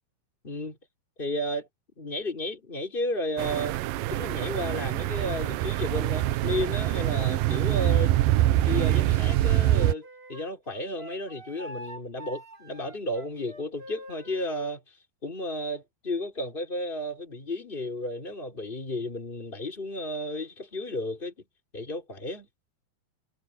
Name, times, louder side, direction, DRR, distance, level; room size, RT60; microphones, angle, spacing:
voice 1, 0.4-0.8 1.2-1.7 2.0-3.8 4.1-8.1 8.6-14.8 15.2-21.3 21.7-22.5, left 1 dB, 15° left, 5.0 m, -33 dB
sound 1, 3.4-9.9, right 15 dB, 75° right, 2.3 m, -24 dB
Wind instrument woodwind instrument, 9.7-14.7, right 1 dB, 20° right, 2.1 m, -44 dB
omnidirectional pair, 4.5 m